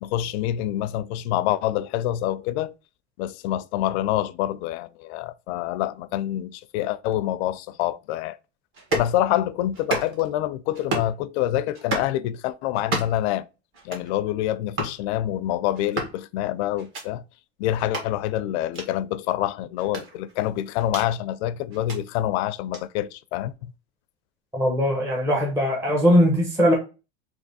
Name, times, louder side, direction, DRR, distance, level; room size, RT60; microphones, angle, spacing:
voice 1, 0.0-2.7 3.2-8.4 8.9-13.5 13.8-17.2 17.6-23.7, left 13 dB, 75° left, 0.5 m, -26 dB
sound 1, 8.7-9.1 9.7-10.3 10.7-11.2 11.7-12.1 12.7-13.3 13.7-14.1 14.7-15.0 15.7-16.2 16.8-17.0 17.8-18.1 18.7-18.9 19.8-21.1 21.7-22.0 22.7-22.8, right 2 dB, 40° right, 1.5 m, -31 dB
voice 2, 24.5-26.7, equal, 10° right, 0.7 m, -20 dB
3.4 x 3.0 x 4.0 m
cardioid pair, 165°, 33 cm